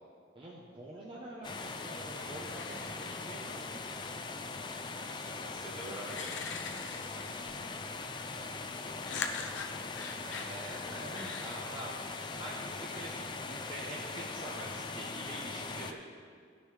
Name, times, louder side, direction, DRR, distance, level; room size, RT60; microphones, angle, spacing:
voice 1, 0.3-3.7 4.9-7.0 9.9-16.0, right 1 dB, 25° right, -5 dB, 0.9 m, -46 dB
sound 1, 1.4-15.9, left 3 dB, 25° left, 0.3 m, -41 dB
Man Snoring, 2.5-3.8 5.4-5.5 6.1-7.6 9.0-10.5 11.1-11.6, left 5 dB, 80° left, 0.6 m, -42 dB
voice 2, 5.3-5.7 7.2-7.8 8.4-9.1 11.0-11.4, right 1 dB, 60° right, -6 dB, 2.3 m, -52 dB
15.0 x 6.3 x 3.3 m, 2.1 s
head